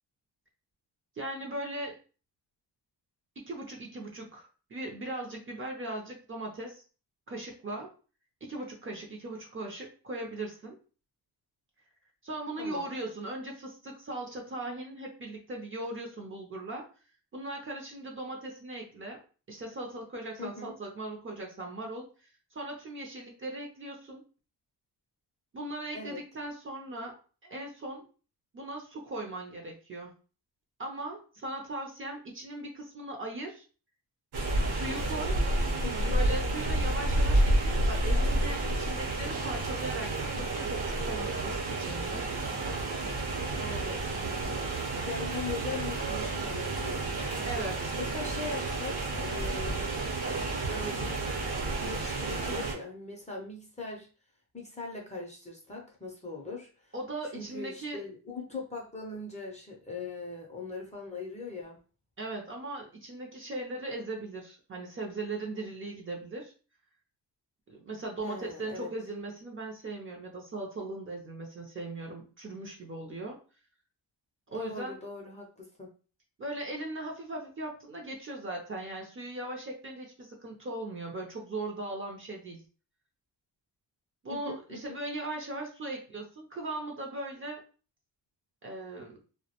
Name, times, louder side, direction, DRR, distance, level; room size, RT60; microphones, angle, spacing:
voice 1, 1.2-2.0 3.4-6.8 7.3-7.9 8.4-10.8 12.2-16.8 17.3-19.2 19.5-24.2 25.5-28.1 28.5-30.1 30.8-33.6 34.7-35.4 36.1-42.2 47.4-48.0 56.9-58.0 62.2-66.5 67.7-73.4 74.5-74.9 76.4-82.6 84.2-87.6 88.6-89.2, right 2 dB, 30° right, 0 dB, 0.5 m, -39 dB
voice 2, 12.6-12.9 20.4-20.7 25.9-26.2 35.8-36.1 43.6-44.6 45.1-47.4 48.0-49.9 50.7-51.2 51.7-54.1 54.5-56.7 57.3-61.8 68.2-68.9 74.5-75.9 84.3-85.0, left 3 dB, 15° left, -2 dB, 0.5 m, -40 dB
sound 1, 34.3-52.7, right 2 dB, 65° right, 0.8 m, -30 dB
2.2 x 2.1 x 2.8 m, 0.37 s
cardioid pair, 110°, 42 cm